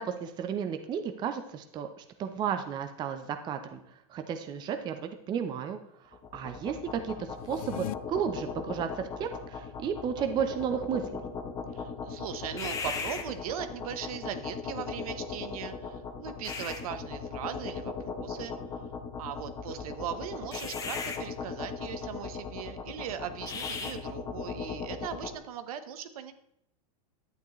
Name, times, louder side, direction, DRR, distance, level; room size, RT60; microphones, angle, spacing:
voice 1, 0.0-3.8 4.1-5.8 6.3-8.9 9.2-11.0, right 8 dB, 20° right, 7 dB, 0.6 m, -33 dB
sound 1, 6.1-25.4, left 5 dB, 15° left, 1.0 m, -38 dB
sound 2, 7.3-7.9, left 16 dB, 65° left, 0.4 m, -37 dB
voice 2, 11.7-18.5 19.2-26.3, right 9 dB, 70° right, 10 dB, 1.0 m, -39 dB
11.0 x 9.1 x 3.1 m, 0.77 s
supercardioid pair, 145°, 19 cm